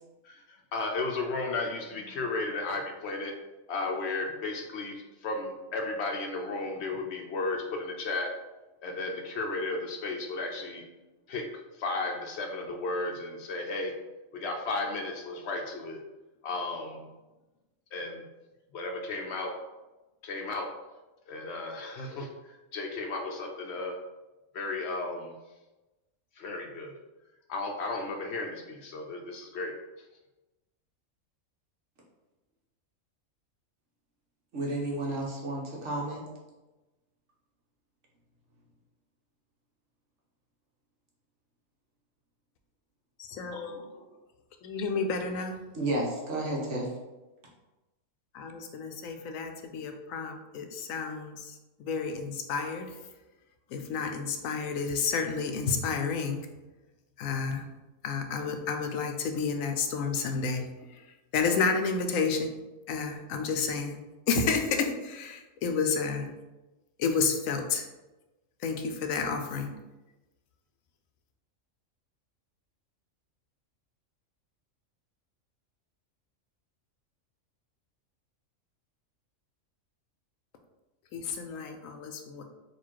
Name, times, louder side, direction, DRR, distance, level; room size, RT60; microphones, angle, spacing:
voice 1, 0.2-3.3 3.7-8.3 8.8-10.8 11.3-11.4 11.7-13.9 14.3-16.0 16.4-17.1 17.9-18.2 18.7-19.5 20.2-20.7 21.3-24.0 24.5-25.3 26.4-26.9 27.5-29.7, left 3 dB, 65° left, 2 dB, 0.8 m, -34 dB
voice 2, 34.5-36.2 45.7-46.9, right 1 dB, 65° right, -2 dB, 1.3 m, -31 dB
voice 3, 43.2-43.7 44.6-45.6 48.3-51.5 51.8-52.9 53.7-56.4 57.2-57.6 58.0-60.6 61.3-62.5 62.9-64.0 64.3-66.3 67.0-67.8 68.6-69.7 81.1-82.4, left 5 dB, 85° left, 5 dB, 1.0 m, -30 dB
4.2 x 2.5 x 4.5 m, 1.1 s
omnidirectional pair, 1.4 m